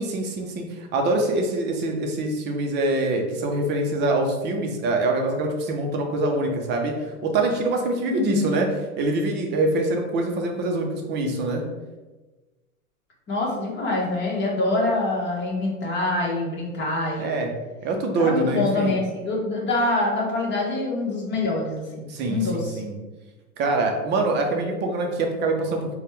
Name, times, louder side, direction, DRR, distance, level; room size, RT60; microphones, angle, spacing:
voice 1, 0.0-6.9 7.2-8.7 9.0-11.6 17.2-17.5 17.8-18.9 22.1-22.9 23.6-25.9, right 2 dB, 25° right, 3 dB, 0.6 m, -24 dB
voice 2, 8.1-8.6 13.3-17.4 18.2-22.8, left 2 dB, 25° left, -3 dB, 1.3 m, -25 dB
4.0 x 2.3 x 3.3 m, 1.2 s
hypercardioid pair, 105°, 41 cm